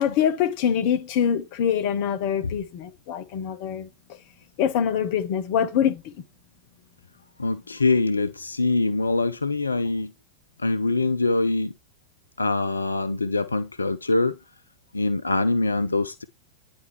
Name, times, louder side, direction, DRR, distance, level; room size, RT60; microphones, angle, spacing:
voice 1, 0.0-3.9 4.6-6.1, left 8 dB, 45° left, 0.8 m, -24 dB
voice 2, 7.4-10.1 10.6-11.7 12.4-14.4 14.9-16.2, left 3 dB, 80° left, 0.3 m, -24 dB
9.3 x 4.3 x 3.1 m
figure-of-eight pair, 90°, 0 cm